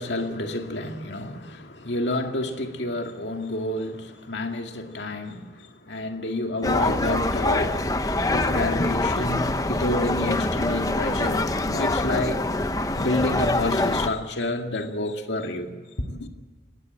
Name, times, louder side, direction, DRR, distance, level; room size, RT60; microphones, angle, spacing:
voice 1, 0.0-12.4 12.9-15.8 16.1-16.3, left 2 dB, 90° left, 2.1 m, -29 dB
sound 1, 6.6-14.1, left 2 dB, 20° left, 0.9 m, -25 dB
24.0 x 19.5 x 7.7 m
head